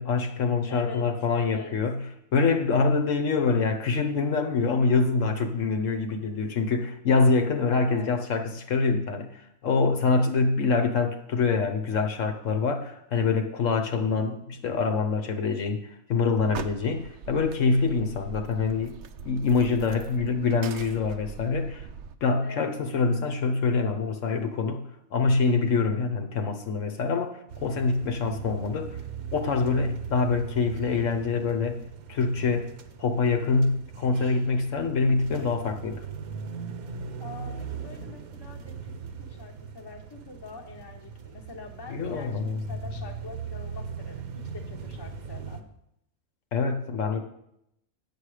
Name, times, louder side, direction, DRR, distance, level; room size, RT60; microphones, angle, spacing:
voice 1, 0.0-2.0 2.3-19.0 19.2-21.9 22.2-29.0 29.3-31.8 32.1-32.7 33.0-36.0 41.9-42.6 46.5-47.2, left 4 dB, 65° left, 5 dB, 1.1 m, -25 dB
voice 2, 0.7-1.7 7.7-8.1 22.4-22.8 37.2-38.9 39.2-44.2 44.5-45.6 47.1-47.2, left 4 dB, 20° left, 3 dB, 0.9 m, -44 dB
sound 1, 16.4-22.2, right 6 dB, 65° right, 0.8 m, -42 dB
sound 2, 27.5-45.6, right 6 dB, 80° right, 1.2 m, -39 dB
8.7 x 6.9 x 4.9 m, 0.77 s
omnidirectional pair, 1.5 m